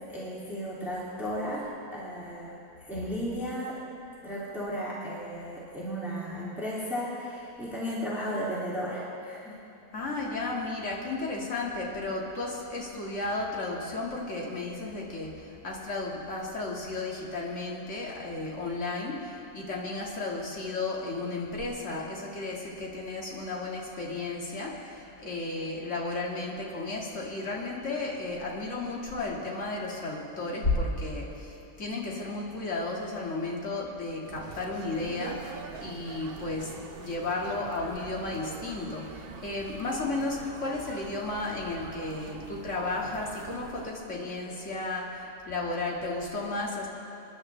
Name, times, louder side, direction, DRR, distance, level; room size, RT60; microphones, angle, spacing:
voice 1, 0.1-3.8 4.2-9.8, equal, ahead, -8 dB, 2.5 m, -35 dB
voice 2, 9.9-46.9, left 2 dB, 50° left, -3 dB, 2.3 m, -33 dB
sound 1, 34.2-43.9, right 6 dB, 60° right, 0.6 m, -44 dB
26.5 x 10.5 x 3.3 m, 2.9 s
omnidirectional pair, 1.7 m